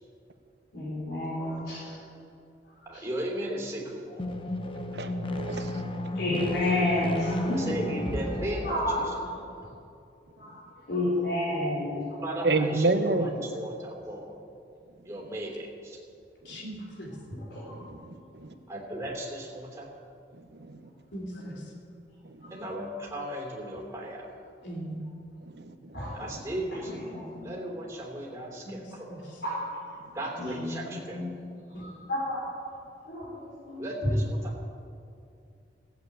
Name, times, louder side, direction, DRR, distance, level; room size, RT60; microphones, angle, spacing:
voice 1, 0.7-1.9 2.8-3.0 6.1-7.7 8.6-9.0 9.2-9.3 10.4-10.6 10.9-12.2 12.5-12.6 17.5-17.8 22.4-22.5 23.7-23.8 25.9-26.2 26.8-27.5 29.4-29.6 30.4-31.3 31.7-32.5 33.0-34.1, left 1 dB, 65° left, -7 dB, 4.3 m, -31 dB
voice 2, 2.8-4.1 7.5-9.0 12.2-14.3 15.0-16.0 18.7-19.9 22.5-24.3 26.1-29.2 30.1-31.2 33.8-34.6, right 1 dB, 15° right, -1 dB, 3.0 m, -36 dB
sound 1, 4.1-9.7, left 1 dB, 30° left, 0.8 m, -33 dB
voice 3, 4.9-5.9 12.4-13.4 16.5-16.6 17.7-18.5 20.3-20.8 22.2-22.5 25.4-26.0 30.0-30.1, right 3 dB, 70° right, 8 dB, 1.0 m, -30 dB
voice 4, 16.4-17.1 21.1-21.7 24.6-24.9 28.6-29.4 31.7-31.8, right 1 dB, 85° left, -2 dB, 3.3 m, -40 dB
16.0 x 8.0 x 8.3 m, 2.5 s
head